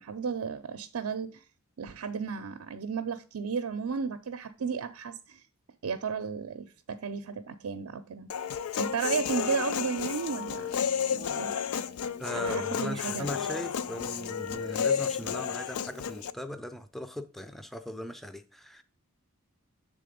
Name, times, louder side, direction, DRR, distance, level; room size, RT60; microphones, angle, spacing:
voice 1, 0.0-1.4 1.8-5.4 5.8-8.3 8.8-10.8 11.1-11.5 12.3-13.3, right 5 dB, 85° right, 0.5 m, -34 dB
Human voice, 8.3-16.3, left 7 dB, 90° left, 0.4 m, -32 dB
voice 2, 12.2-18.8, equal, ahead, 0.4 m, -39 dB
7.6 x 3.7 x 5.0 m
head